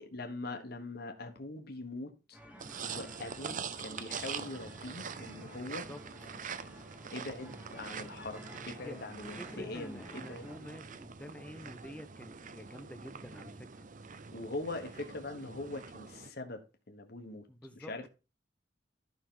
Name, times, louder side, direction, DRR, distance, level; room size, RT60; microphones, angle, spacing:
voice 1, 0.0-2.4 2.9-5.9 7.1-10.5 14.3-17.5 17.7-18.1, left 2 dB, 60° left, 1.2 m, -42 dB
sound 1, 2.3-10.6, equal, 10° right, 1.5 m, -53 dB
sound 2, 2.6-16.3, right 6 dB, 45° right, 0.7 m, -44 dB
voice 2, 5.6-6.0 8.8-9.0 9.4-13.9 17.5-18.1, left 1 dB, 5° left, 0.7 m, -48 dB
12.0 x 5.4 x 3.8 m
head